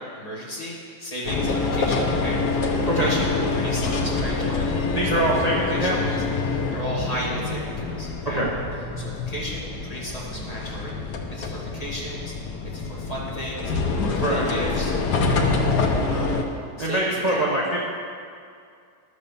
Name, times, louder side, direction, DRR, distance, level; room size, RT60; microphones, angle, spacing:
voice 1, 0.2-5.2 5.7-6.2 6.4-8.4 9.0-13.7 14.0-14.9 15.2-15.5 15.8-16.4 16.8-17.5, equal, 20° left, -5 dB, 2.0 m, -35 dB
sound 1, 1.3-16.4, left 3 dB, 70° left, 1.5 m, -26 dB
voice 2, 4.9-6.0 8.3-8.5 14.2-14.5 16.8-17.8, right 1 dB, 25° right, -5 dB, 1.1 m, -23 dB
11.5 x 6.6 x 7.0 m, 2.3 s
omnidirectional pair, 1.8 m